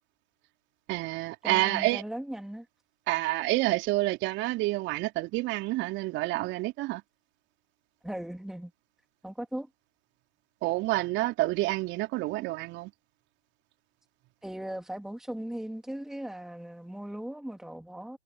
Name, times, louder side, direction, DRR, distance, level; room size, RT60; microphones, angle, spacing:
voice 1, 0.9-2.0 3.1-7.0 10.6-12.9, right 19 dB, 30° right, 3.3 m, -28 dB
voice 2, 1.4-2.7 8.0-8.7 9.2-9.7 14.4-18.2, right 1 dB, ahead, 2.2 m, -38 dB
figure-of-eight pair, 115°, 34 cm